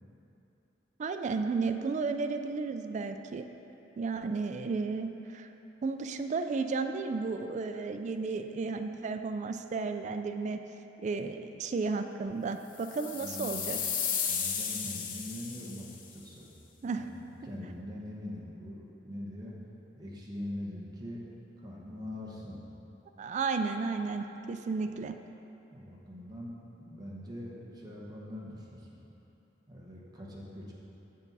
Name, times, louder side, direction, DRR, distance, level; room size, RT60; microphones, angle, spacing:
voice 1, 1.0-3.5 4.0-5.5 5.8-10.6 11.0-13.8 16.8-17.1 23.2-25.1, right 4 dB, 40° right, 7 dB, 0.3 m, -33 dB
sound 1, 12.8-16.0, left 7 dB, 50° left, 0.7 m, -34 dB
voice 2, 13.2-13.7 14.3-16.5 16.9-19.5 20.0-21.2 21.6-22.6 25.7-29.0 29.7-30.7, left 1 dB, 25° right, -5 dB, 1.0 m, -43 dB
7.1 x 6.7 x 4.0 m, 3.0 s
head